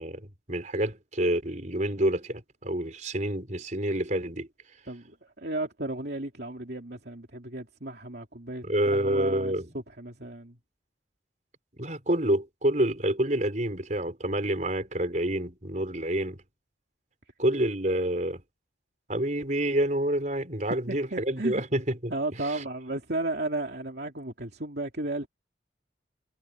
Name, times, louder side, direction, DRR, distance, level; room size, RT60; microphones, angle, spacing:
voice 1, 0.0-4.5 8.6-9.7 11.8-16.4 17.4-18.4 19.1-22.1 22.5-22.6, right 1 dB, 40° right, 4.9 m, -28 dB
voice 2, 4.9-10.6 20.9-21.6 22.1-25.3, right 2 dB, 55° right, 3.1 m, -34 dB
head